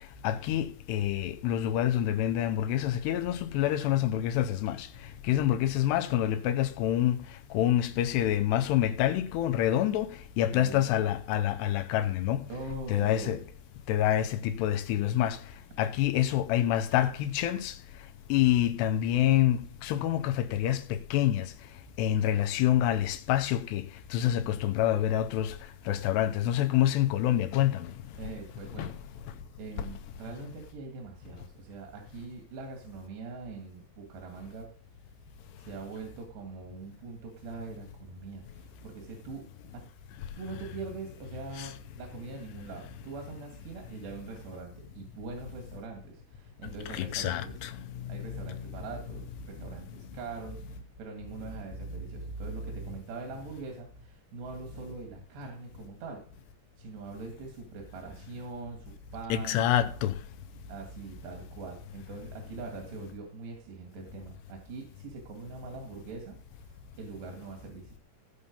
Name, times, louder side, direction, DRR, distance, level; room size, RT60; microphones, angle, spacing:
voice 1, 0.2-4.9 5.3-7.2 7.5-10.1 10.4-12.4 12.9-13.4 13.9-15.4 15.8-17.7 18.3-21.5 22.0-23.9 24.1-25.5 25.9-27.9 28.8-28.9 41.6-41.7 46.9-47.7 48.1-48.2 59.3-60.1, left 12 dB, 85° left, 3.0 m, -27 dB
voice 2, 10.5-10.9 12.5-13.5 28.2-29.0 29.6-34.7 35.6-39.5 39.7-39.8 40.4-47.6 48.1-56.2 56.8-59.9 60.7-66.4 66.6-68.0, right 4 dB, 80° right, 4.1 m, -43 dB
16.5 x 5.6 x 5.3 m
omnidirectional pair, 4.8 m